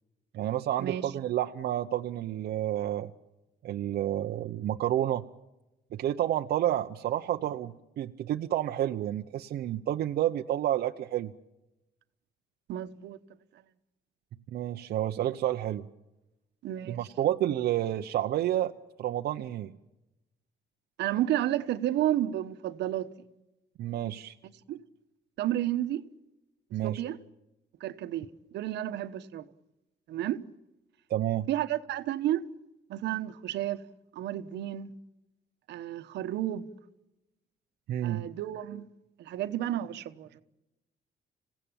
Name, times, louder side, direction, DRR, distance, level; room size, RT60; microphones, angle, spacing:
voice 1, 0.3-3.1 3.6-5.3 5.9-11.3 14.5-15.9 16.9-18.7 19.0-19.7 23.8-24.4 26.7-27.0 31.1-31.5 37.9-38.3, right 12 dB, 60° right, 0.8 m, -30 dB
voice 2, 12.7-13.2 16.6-17.0 21.0-23.1 24.4-24.8 25.4-26.0 26.8-27.2 27.8-29.4 30.1-30.4 31.5-32.4 32.9-33.8 34.1-34.9 35.7-36.7 38.0-38.9 39.2-40.4, right 13 dB, 80° right, 1.2 m, -31 dB
27.0 x 17.0 x 8.8 m
cardioid pair, 165°, 18 cm